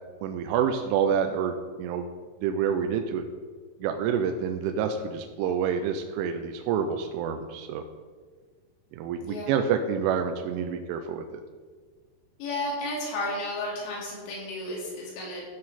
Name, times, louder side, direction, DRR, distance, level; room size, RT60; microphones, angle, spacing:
voice 1, 0.2-2.1 2.4-3.2 3.8-7.8 8.9-11.4, right 7 dB, 85° right, 5 dB, 3.1 m, -28 dB
voice 2, 9.2-9.5 12.4-15.4, left 1 dB, 90° left, -4 dB, 5.4 m, -33 dB
15.0 x 7.6 x 4.2 m, 1.5 s
omnidirectional pair, 5.6 m